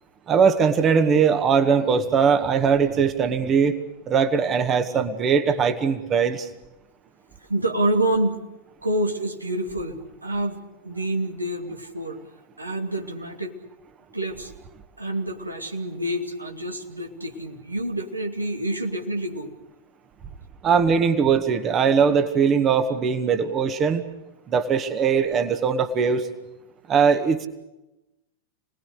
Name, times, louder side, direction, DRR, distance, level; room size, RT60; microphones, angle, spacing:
voice 1, 0.3-3.8 4.1-6.5 20.6-24.0 24.5-26.3 26.9-27.5, right 6 dB, 25° right, 9 dB, 1.9 m, -20 dB
voice 2, 7.5-8.4 8.8-12.2 12.6-13.5 14.1-14.5 15.0-19.5, right 1 dB, 85° right, 3 dB, 2.8 m, -27 dB
29.0 x 20.5 x 6.7 m, 0.96 s
figure-of-eight pair, 90°, 0 cm